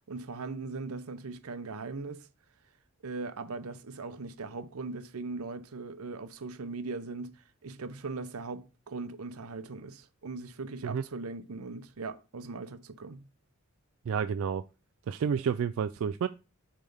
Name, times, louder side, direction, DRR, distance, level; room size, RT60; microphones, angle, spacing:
voice 1, 0.1-2.3 3.0-13.3, right 3 dB, 90° right, 0.7 m, -39 dB
voice 2, 14.1-14.6 15.1-16.3, right 7 dB, 70° right, 0.3 m, -30 dB
7.0 x 3.3 x 5.4 m
head